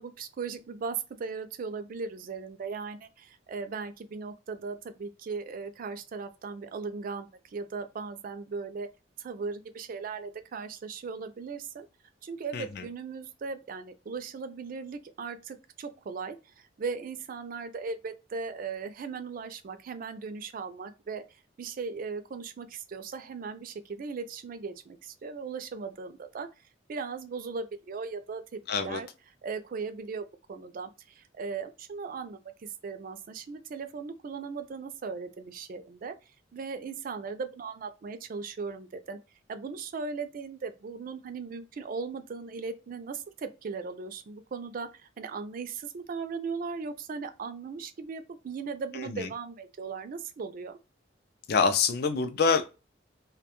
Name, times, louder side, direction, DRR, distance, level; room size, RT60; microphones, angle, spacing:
voice 1, 0.0-8.9 9.2-11.9 12.2-21.2 21.6-26.5 26.9-28.4 28.8-29.1 29.4-36.1 36.5-39.2 39.5-50.8, right 5 dB, 45° right, 0.3 m, -38 dB
voice 2, 12.5-12.9 28.7-29.0 48.9-49.3 51.5-52.7, left 5 dB, 55° left, 0.4 m, -26 dB
2.3 x 2.2 x 2.8 m
head